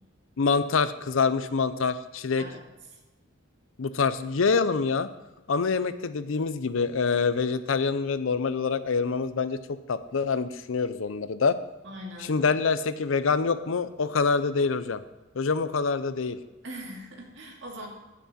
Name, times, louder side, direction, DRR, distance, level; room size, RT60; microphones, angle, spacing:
voice 1, 0.4-2.4 3.8-5.1 5.5-11.6 12.3-15.0 15.4-16.4, left 5 dB, 75° left, 13 dB, 0.6 m, -26 dB
voice 2, 11.8-12.5 16.6-17.9, equal, 60° right, 0 dB, 2.2 m, -41 dB
15.0 x 6.1 x 4.2 m, 1.1 s
head